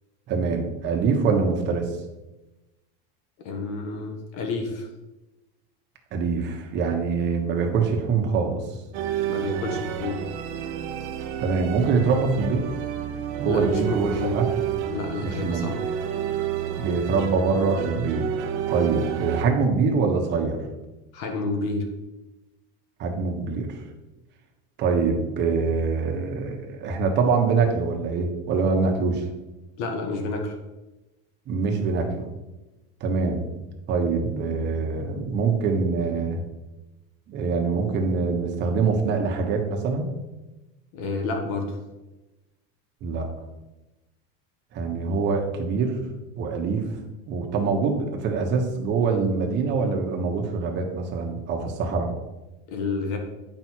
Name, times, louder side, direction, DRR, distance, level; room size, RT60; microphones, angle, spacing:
voice 1, 0.3-1.9 6.1-8.6 11.4-12.7 13.4-14.5 15.2-15.7 16.8-18.3 18.7-20.6 23.0-23.8 24.8-29.2 31.5-32.3 33.0-33.5 33.9-36.4 37.3-40.1 43.0-43.3 44.7-46.0 46.4-46.9 47.3-52.1, right 4 dB, 35° right, 2 dB, 1.3 m, -24 dB
voice 2, 3.4-4.9 9.3-10.2 13.4-14.5 14.9-15.8 21.1-21.9 29.8-30.6 40.9-41.8 52.7-53.2, left 3 dB, 60° left, 4 dB, 1.6 m, -29 dB
sound 1, 8.9-19.4, right 9 dB, 55° right, 0.9 m, -30 dB
8.7 x 5.5 x 4.6 m, 1.1 s
cardioid pair, 165°, 31 cm